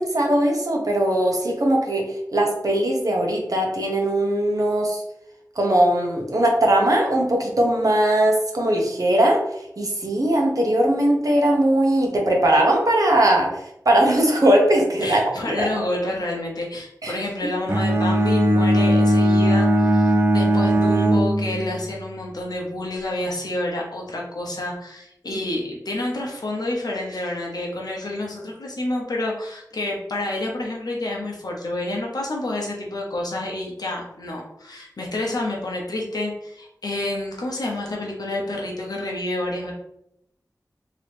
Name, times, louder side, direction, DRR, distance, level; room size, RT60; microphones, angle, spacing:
voice 1, 0.0-2.0 2.3-5.0 5.6-9.4 9.8-13.5 13.8-15.7 17.0-17.1 25.3-25.4, right 1 dB, 60° right, 0 dB, 0.9 m, -20 dB
voice 2, 15.0-39.7, left 1 dB, 75° left, -1 dB, 0.8 m, -29 dB
Bowed string instrument, 17.7-21.9, right 1 dB, 40° right, 0.4 m, -18 dB
3.0 x 2.8 x 3.4 m, 0.78 s
wide cardioid pair, 50°, 7 cm